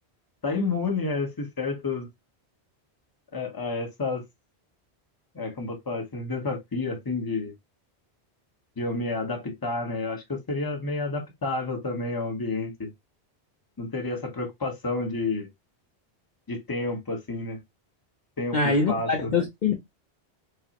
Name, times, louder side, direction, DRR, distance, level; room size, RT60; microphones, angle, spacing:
voice 1, 0.4-2.1 3.3-4.2 5.3-7.5 8.8-12.9 13.8-15.5 16.5-17.6 18.4-19.3, left 3 dB, 20° left, 0.8 m, -30 dB
voice 2, 18.5-19.7, left 4 dB, 50° left, 0.7 m, -24 dB
4.9 x 2.1 x 2.8 m
omnidirectional pair, 1.1 m